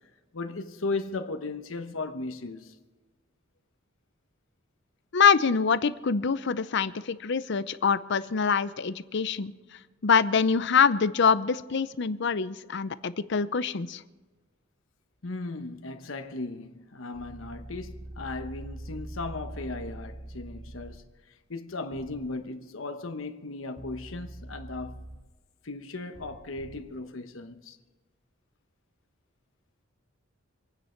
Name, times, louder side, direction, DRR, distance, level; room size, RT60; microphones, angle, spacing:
voice 1, 0.3-2.7 15.2-21.0 21.5-25.1 25.6-27.8, left 3 dB, 90° left, 1.1 m, -36 dB
voice 2, 5.1-9.5 10.0-14.0, left 6 dB, 60° left, 0.6 m, -25 dB
sound 1, 17.1-21.0 21.9-22.3 23.8-25.2 26.1-26.8, right 1 dB, 40° right, 2.0 m, -43 dB
26.0 x 9.8 x 4.5 m
head